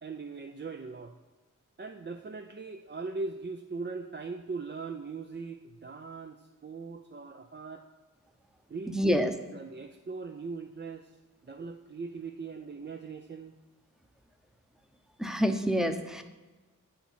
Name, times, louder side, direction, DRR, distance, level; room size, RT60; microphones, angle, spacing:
voice 1, 0.0-1.1 1.8-7.8 8.7-11.2 11.4-13.5, right 4 dB, 35° right, 4 dB, 0.5 m, -39 dB
voice 2, 8.9-9.3 15.2-16.2, equal, ahead, 7 dB, 0.8 m, -27 dB
9.0 x 4.5 x 5.5 m, 1.2 s
cardioid pair, 50°, 33 cm